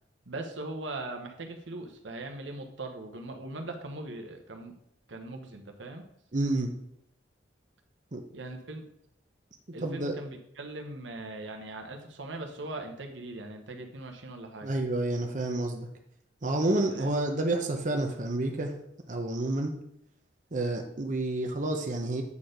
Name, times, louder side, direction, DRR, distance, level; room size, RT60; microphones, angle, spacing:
voice 1, 0.3-4.7 5.1-6.0 8.3-8.9 9.7-14.7 16.9-17.1, right 2 dB, 90° right, 4 dB, 1.1 m, -40 dB
voice 2, 6.3-6.7 8.1-8.2 9.8-10.2 14.6-15.9 16.4-18.7 19.1-19.7 20.5-22.2, right 2 dB, 45° right, 3 dB, 0.8 m, -29 dB
8.4 x 4.4 x 5.0 m, 0.75 s
head